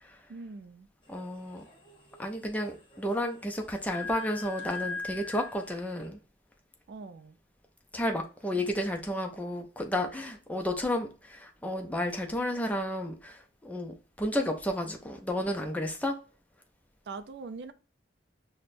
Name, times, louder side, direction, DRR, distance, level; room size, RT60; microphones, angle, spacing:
voice 1, 0.3-0.9 6.9-7.4 17.1-17.7, right 4 dB, 65° right, 0.4 m, -42 dB
sound 1, 1.0-6.1, left 4 dB, 30° left, 1.0 m, -42 dB
voice 2, 1.1-1.7 2.2-6.2 7.9-16.2, left 1 dB, 10° left, 0.5 m, -32 dB
5.9 x 2.1 x 2.5 m
head